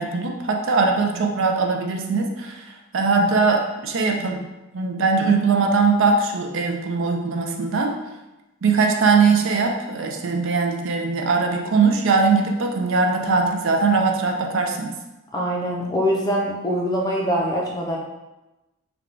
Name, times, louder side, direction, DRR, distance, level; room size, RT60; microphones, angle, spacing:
voice 1, 0.0-4.4 4.7-7.9 8.6-14.9, right 4 dB, 55° right, 2 dB, 0.4 m, -21 dB
voice 2, 15.3-18.0, equal, 15° left, -3 dB, 0.5 m, -23 dB
3.5 x 2.2 x 3.7 m, 1.0 s
head